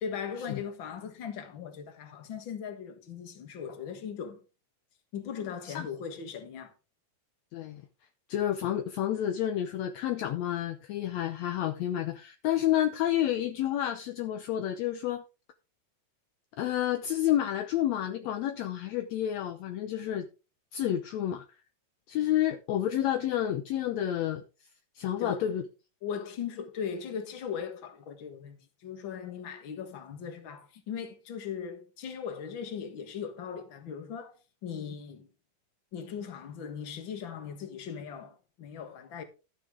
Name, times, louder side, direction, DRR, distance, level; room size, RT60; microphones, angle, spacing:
voice 1, 0.0-4.4 5.1-6.7 25.2-25.6 26.0-34.3 34.6-35.3 35.9-39.2, left 7 dB, 45° left, 2.1 m, -39 dB
voice 2, 7.5-7.8 8.3-15.2 16.6-20.3 20.7-21.4 22.1-24.4 25.0-25.6, left 11 dB, 75° left, 1.9 m, -30 dB
12.5 x 8.2 x 3.7 m
omnidirectional pair, 3.3 m